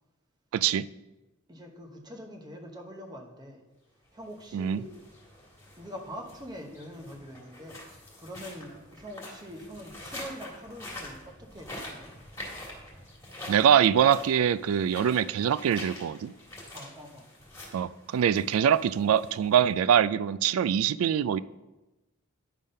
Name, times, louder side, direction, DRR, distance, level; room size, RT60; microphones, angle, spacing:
voice 1, 0.5-0.9 4.5-4.8 13.5-16.3 17.7-21.4, right 8 dB, 80° right, 18 dB, 0.3 m, -24 dB
voice 2, 1.5-3.6 4.1-4.9 5.8-7.8 8.2-12.1 16.7-17.3, equal, 20° right, 3 dB, 0.9 m, -44 dB
sound 1, 4.2-19.9, left 1 dB, 15° left, 2.1 m, -46 dB
10.0 x 3.6 x 5.3 m, 1.1 s
head